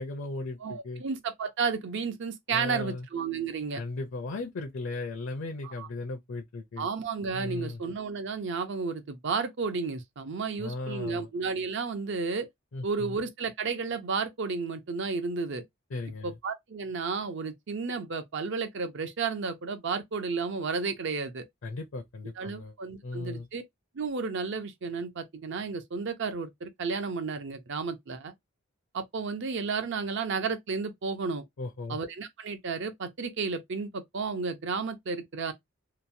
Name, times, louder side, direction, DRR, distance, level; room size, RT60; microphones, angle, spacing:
voice 1, 0.0-1.0 2.5-3.1 3.7-6.9 7.3-7.8 10.6-11.3 12.7-13.2 15.9-16.4 21.6-22.7 23.0-23.5 31.6-32.0, left 2 dB, 65° left, 0.6 m, -36 dB
voice 2, 0.6-3.8 5.6-5.9 6.8-12.5 12.8-15.6 16.2-21.5 22.4-23.6 23.9-28.3 28.9-31.4 31.9-35.5, right 5 dB, 60° right, 0.6 m, -32 dB
2.9 x 2.2 x 2.6 m
head